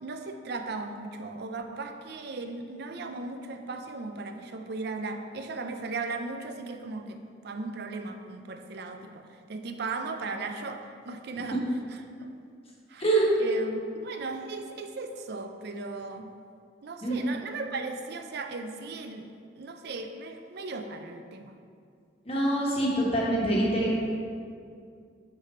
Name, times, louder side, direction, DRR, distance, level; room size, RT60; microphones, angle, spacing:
voice 1, 0.0-7.2 7.4-11.6 12.2-12.3 12.9-13.1 13.4-16.3 16.8-19.3 19.6-21.6, right 3 dB, 60° right, 6 dB, 0.5 m, -37 dB
voice 2, 22.2-23.9, right 1 dB, 30° left, -4 dB, 1.3 m, -25 dB
6.1 x 4.1 x 5.4 m, 2.3 s
head